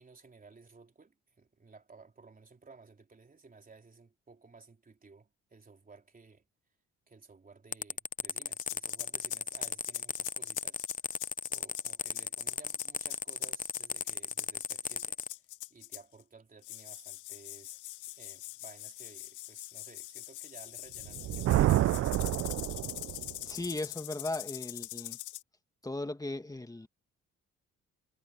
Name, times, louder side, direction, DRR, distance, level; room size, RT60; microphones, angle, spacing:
voice 1, 0.0-6.4 7.1-10.8 11.5-17.8 18.2-21.4, right 4 dB, 30° right, 3.7 m, -56 dB
sound 1, 7.7-15.3, left 6 dB, 30° left, 0.7 m, -35 dB
sound 2, 8.6-16.2 16.6-25.4, left 17 dB, 80° left, 0.5 m, -43 dB
Thunder, 21.0-23.4, right 14 dB, 55° right, 0.4 m, -28 dB
voice 2, 23.5-25.2 25.8-26.9, left 2 dB, 10° left, 2.2 m, -37 dB
cardioid pair, 90°, 30 cm